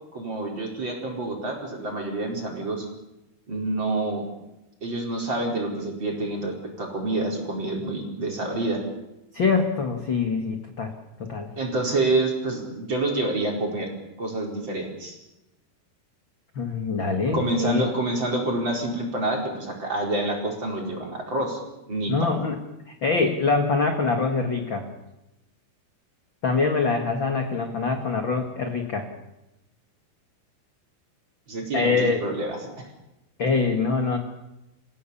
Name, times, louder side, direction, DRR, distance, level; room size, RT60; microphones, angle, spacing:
voice 1, 0.1-2.9 3.5-4.2 4.8-8.8 11.6-13.9 14.2-15.2 17.3-21.6 21.9-22.3 31.5-32.9, right 2 dB, 30° right, 1 dB, 5.0 m, -27 dB
voice 2, 9.3-10.9 11.2-11.5 16.6-17.8 22.1-22.6 22.9-24.9 26.4-29.1 31.7-32.2 33.4-34.2, left 4 dB, 40° left, 5 dB, 1.9 m, -24 dB
28.5 x 16.5 x 7.2 m, 0.94 s
omnidirectional pair, 4.6 m